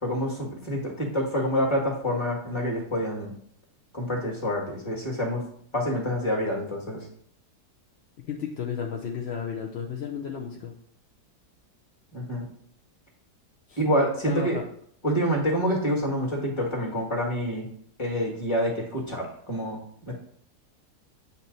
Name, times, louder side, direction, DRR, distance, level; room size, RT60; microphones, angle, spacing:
voice 1, 0.0-3.3 3.9-5.4 5.7-7.1 12.1-12.5 13.8-14.6 15.0-17.7 18.0-19.8 20.1-20.2, equal, 20° left, -3 dB, 1.6 m, -27 dB
voice 2, 8.3-10.7 13.7-13.8 14.3-14.6, left 7 dB, 65° left, 0 dB, 0.6 m, -33 dB
8.1 x 3.0 x 3.9 m, 0.65 s
omnidirectional pair, 1.7 m